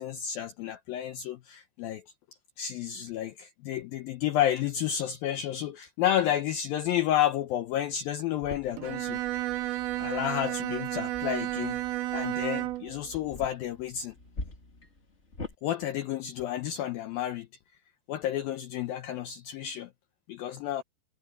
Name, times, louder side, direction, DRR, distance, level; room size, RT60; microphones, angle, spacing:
voice 1, 0.0-2.0 2.6-9.2 10.0-11.8 12.1-14.1 15.6-17.5 18.1-19.9 20.3-20.8, left 11 dB, 90° left, 2.1 m, -31 dB
sound 1, 8.4-15.5, left 2 dB, 20° left, 1.9 m, -45 dB
Bowed string instrument, 8.8-13.0, right 16 dB, 70° right, 2.5 m, -32 dB
omnidirectional pair, 5.3 m